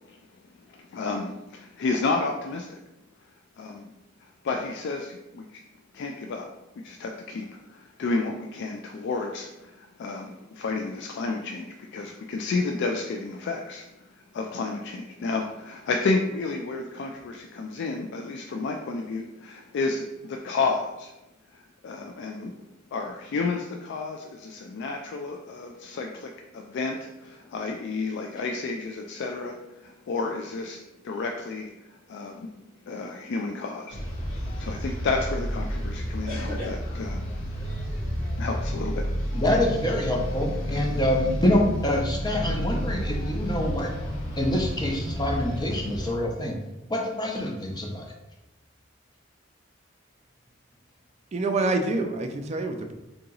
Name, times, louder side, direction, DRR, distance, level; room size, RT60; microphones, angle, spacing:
voice 1, 0.7-2.8 3.6-3.9 4.4-5.6 5.9-6.5 6.8-21.1 21.5-22.5 22.9-32.5 32.9-37.7 38.4-39.4, left 3 dB, 60° left, 0.3 m, -31 dB
sound 1, 33.9-46.1, equal, 85° left, 1.4 m, -30 dB
voice 2, 39.3-43.9 44.4-46.6 46.9-48.1, left 1 dB, 20° left, 0.7 m, -26 dB
voice 3, 51.3-52.9, right 2 dB, 35° right, 0.4 m, -26 dB
3.7 x 2.9 x 3.8 m
head